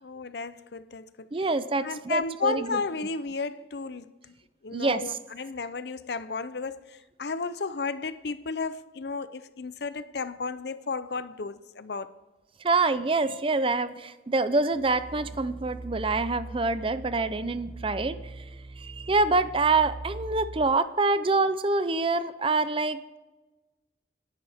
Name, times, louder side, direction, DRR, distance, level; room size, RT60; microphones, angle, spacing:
voice 1, 0.0-1.3 1.8-4.1 4.6-12.2, left 4 dB, 60° left, 0.6 m, -33 dB
voice 2, 1.3-2.8 4.7-5.2 12.6-18.4 18.8-23.2, right 3 dB, 30° right, 0.5 m, -26 dB
sound 1, 14.7-20.6, right 2 dB, 10° right, 1.1 m, -41 dB
27.0 x 10.5 x 3.5 m
head